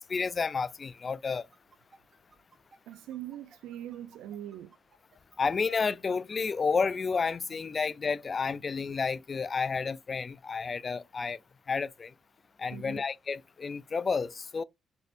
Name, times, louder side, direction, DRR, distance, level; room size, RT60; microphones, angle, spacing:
voice 1, 0.1-1.4 5.4-11.4 11.7-12.1 12.6-14.6, left 5 dB, 35° left, 0.3 m, -31 dB
sound 1, 1.3-7.6, right 3 dB, 40° right, 1.4 m, -59 dB
voice 2, 2.9-4.7 12.7-13.0, right 11 dB, 90° right, 0.3 m, -42 dB
4.2 x 3.2 x 2.5 m
cardioid pair, 90°, 0 cm